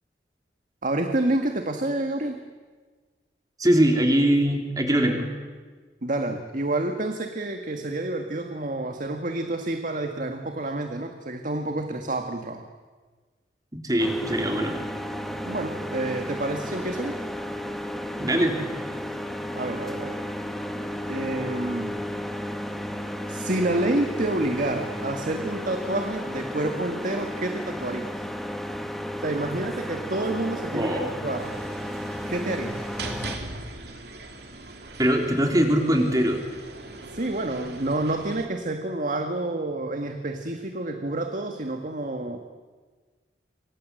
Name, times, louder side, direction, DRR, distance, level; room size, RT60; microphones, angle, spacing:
voice 1, 0.8-2.4 6.0-12.6 15.4-17.1 19.5-20.2 21.1-21.9 23.3-28.1 29.2-31.6 32.3-32.8 37.1-42.4, right 2 dB, 50° right, 5 dB, 1.7 m, -28 dB
voice 2, 3.6-5.3 13.8-14.8 18.2-18.6 30.7-31.2 35.0-36.4, right 1 dB, 20° right, 3 dB, 3.7 m, -22 dB
sound 1, 14.0-33.4, equal, ahead, 1.9 m, -33 dB
sound 2, 31.4-38.5, right 2 dB, 65° right, 3.1 m, -40 dB
27.5 x 24.5 x 7.8 m, 1.4 s
head